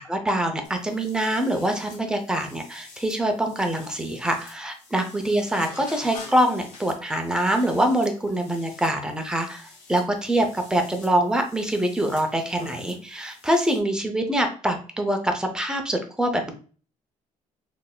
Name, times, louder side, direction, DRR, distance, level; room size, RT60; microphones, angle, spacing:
voice 1, 0.0-16.5, right 1 dB, 5° right, 4 dB, 0.5 m, -24 dB
sound 1, 0.6-13.8, left 3 dB, 90° left, 1.2 m, -47 dB
3.9 x 3.3 x 2.2 m, 0.39 s
cardioid pair, 150°, 13 cm